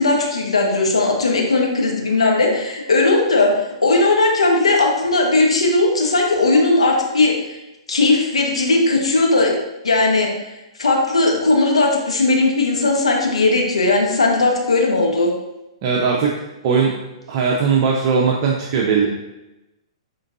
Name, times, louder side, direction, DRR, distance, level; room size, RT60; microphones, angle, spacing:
voice 1, 0.0-3.5 3.8-7.6 7.9-9.5 9.8-10.3 10.8-15.3, left 2 dB, 90° left, 0 dB, 1.4 m, -17 dB
voice 2, 15.8-16.3 16.6-17.0 17.3-19.1, right 5 dB, 45° right, -1 dB, 0.8 m, -18 dB
10.5 x 3.9 x 2.7 m, 0.97 s
hypercardioid pair, 125°, 3 cm